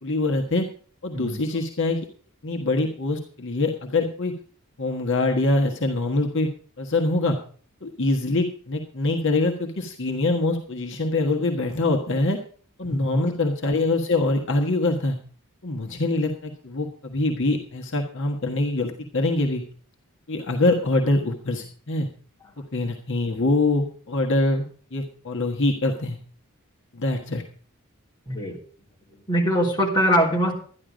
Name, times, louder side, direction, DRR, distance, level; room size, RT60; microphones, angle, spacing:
voice 1, 0.0-0.6 1.0-2.1 2.4-4.3 4.8-6.5 6.8-7.4 7.8-12.4 12.8-15.2 15.6-19.6 20.3-22.1 22.7-24.6 24.9-26.2 26.9-27.4, left 2 dB, 55° left, 1 dB, 1.5 m, -24 dB
voice 2, 12.8-13.2 28.3-28.6 29.3-30.5, equal, 20° left, -2 dB, 3.3 m, -22 dB
12.0 x 11.0 x 5.1 m, 0.43 s
head